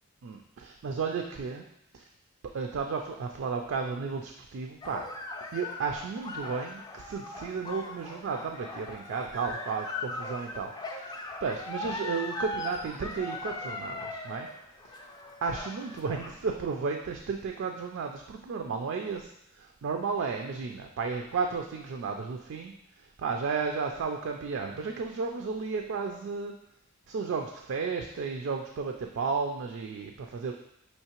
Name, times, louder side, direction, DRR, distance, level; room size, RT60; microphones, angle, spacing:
voice 1, 0.2-1.6 1.9-2.1 2.5-5.1 5.5-14.5 14.9-15.1 15.4-19.3 19.6-22.7 23.0-26.5 27.1-30.5, right 5 dB, 60° right, 3 dB, 0.3 m, -33 dB
sound 1, 4.8-16.5, left 2 dB, 20° left, 0.3 m, -39 dB
5.6 x 3.1 x 2.9 m, 0.79 s
head